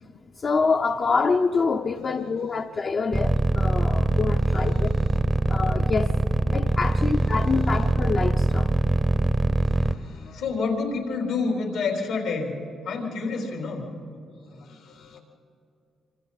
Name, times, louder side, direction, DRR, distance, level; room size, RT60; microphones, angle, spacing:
voice 1, 0.0-4.9 5.5-9.3, left 4 dB, 45° left, 4 dB, 0.7 m, -26 dB
sound 1, 3.1-9.9, right 2 dB, 15° right, 0.7 m, -22 dB
voice 2, 4.8-5.1 6.9-7.0 7.2-7.7 9.6-12.6 12.8-13.9 14.5-15.2, left 4 dB, 85° left, 0 dB, 3.8 m, -30 dB
27.0 x 26.0 x 4.1 m, 2.6 s
cardioid pair, 90°, 0 cm